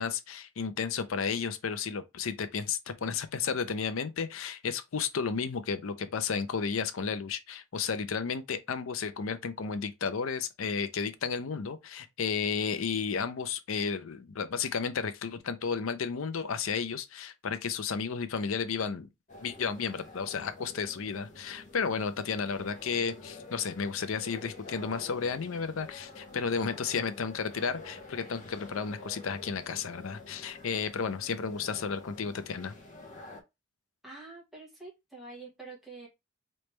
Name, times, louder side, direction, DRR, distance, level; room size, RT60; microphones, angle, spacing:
voice 1, 0.0-19.1 19.4-32.7, left 5 dB, 75° left, 0.5 m, -33 dB
sound 1, 19.3-33.4, left 2 dB, 40° left, 0.9 m, -48 dB
voice 2, 34.0-36.1, right 3 dB, ahead, 1.4 m, -46 dB
3.2 x 3.1 x 3.2 m
head